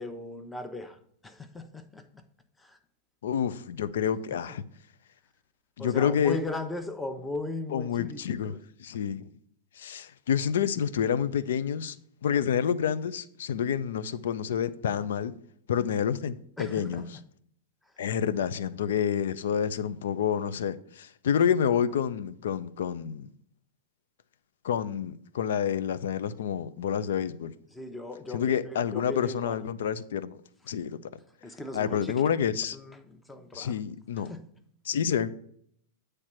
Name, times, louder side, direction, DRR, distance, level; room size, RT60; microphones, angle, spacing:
voice 1, 0.0-2.0 2.6-2.8 5.8-8.6 16.6-17.1 27.7-29.6 31.4-32.2 32.7-33.8 34.3-34.4, left 2 dB, 10° left, 0.8 m, -38 dB
voice 2, 3.2-4.6 5.8-6.4 7.7-8.5 8.8-9.3 9.8-12.0 12.2-15.3 15.7-17.2 18.0-23.3 24.6-27.5 28.3-30.4 30.7-31.0 31.7-32.8 33.5-34.3 34.8-35.3, left 8 dB, 75° left, 0.4 m, -28 dB
8.5 x 3.3 x 6.0 m
hypercardioid pair, 110°, 0 cm